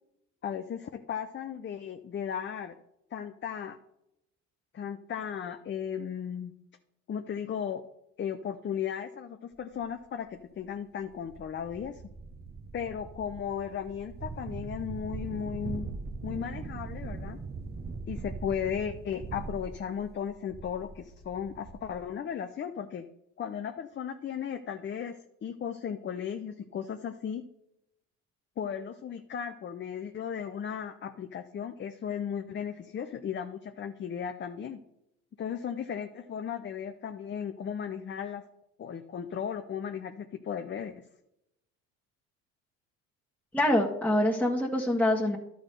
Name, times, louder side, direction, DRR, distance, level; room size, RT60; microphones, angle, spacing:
voice 1, 0.4-2.8 3.1-3.8 4.7-6.5 7.1-7.8 8.2-12.0 12.7-15.9 16.2-17.4 18.1-23.0 23.4-27.4 28.6-34.8 35.4-38.4 38.8-40.9, left 8 dB, 30° left, 8 dB, 0.6 m, -36 dB
sound 1, 9.8-9.9 10.6-10.7 11.0-22.1, right 4 dB, 25° right, 0.8 m, -41 dB
voice 2, 43.5-45.4, left 1 dB, 5° left, -2 dB, 1.5 m, -25 dB
11.5 x 3.9 x 6.6 m, 0.84 s
hypercardioid pair, 65°, 40 cm